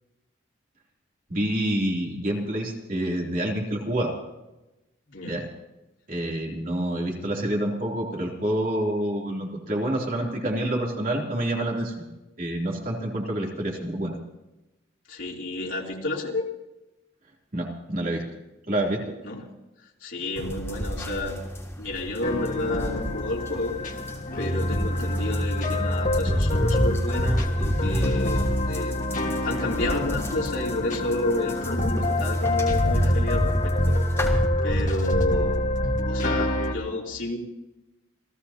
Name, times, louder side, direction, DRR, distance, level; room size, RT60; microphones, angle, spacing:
voice 1, 1.3-4.1 5.3-5.4 6.1-12.1 12.4-14.2 17.5-18.2 18.7-19.0, right 1 dB, 40° right, -2 dB, 3.2 m, -27 dB
voice 2, 15.1-16.5 19.2-19.4 20.0-21.4 21.8-23.8 24.3-29.0 29.4-35.6 36.1-37.4, left 2 dB, 75° left, -2 dB, 3.4 m, -30 dB
sound 1, 20.4-34.3, left 1 dB, 15° left, 3.4 m, -38 dB
sound 2, 22.2-36.7, left 1 dB, 40° left, 1.7 m, -25 dB
28.5 x 17.0 x 2.9 m, 0.99 s
head